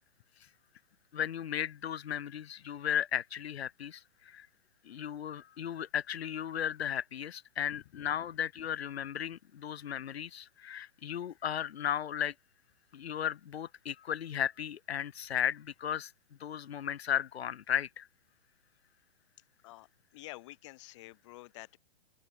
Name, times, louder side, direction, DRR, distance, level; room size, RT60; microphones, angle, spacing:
voice 1, 1.1-4.5 4.8-12.3 12.9-16.1 16.4-18.1, left 9 dB, 75° left, 0.6 m, -35 dB
voice 2, 20.1-21.8, left 19 dB, 30° left, 0.6 m, -48 dB
open air
figure-of-eight pair, 120°, 32 cm